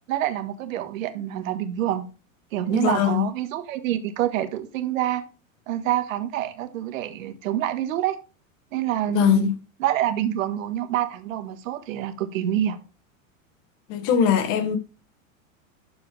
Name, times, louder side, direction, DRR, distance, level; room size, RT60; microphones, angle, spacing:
voice 1, 0.1-2.0 2.5-5.2 5.7-8.2 8.7-9.5 9.8-12.8, right 12 dB, 70° right, 1.6 m, -26 dB
voice 2, 2.7-3.3 9.1-9.6 13.9-14.8, left 9 dB, 50° left, 1.7 m, -21 dB
12.5 x 4.8 x 3.3 m
hypercardioid pair, 110°, 41 cm